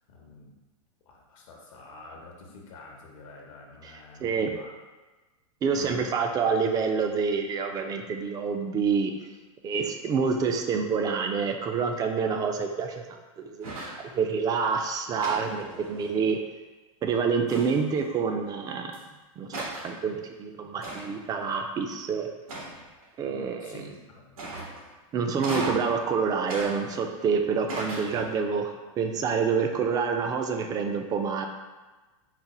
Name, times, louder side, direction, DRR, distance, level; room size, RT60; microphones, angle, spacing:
voice 1, 0.1-0.6 1.1-4.7 5.7-6.1 15.1-15.2 23.2-24.4, left 3 dB, 70° left, 0 dB, 0.8 m, -47 dB
voice 2, 5.6-9.1 9.6-16.4 17.0-19.0 19.4-19.5 19.8-22.3 23.2-23.8 25.1-31.5, right 5 dB, 20° right, 5 dB, 0.3 m, -27 dB
sound 1, 13.6-14.1 15.2-16.3 17.5-18.0 18.9-19.0 19.5-20.0 20.8-21.3 22.5-23.0 24.4-24.9 25.4-26.0 26.5-27.3 27.7-28.4, right 2 dB, 85° right, 1.2 m, -37 dB
4.0 x 2.1 x 4.1 m, 1.2 s
hypercardioid pair, 125°, 18 cm